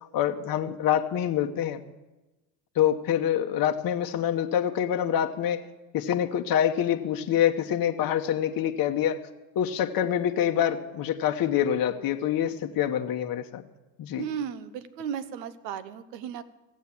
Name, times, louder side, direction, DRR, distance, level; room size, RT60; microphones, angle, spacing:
voice 1, 0.1-1.8 2.8-5.6 5.9-9.2 9.6-13.6 14.0-14.2, left 10 dB, 45° left, 5 dB, 0.9 m, -26 dB
voice 2, 14.2-16.4, right 8 dB, 85° right, 14 dB, 1.0 m, -35 dB
15.5 x 7.4 x 7.2 m, 1.1 s
hypercardioid pair, 80°, 50 cm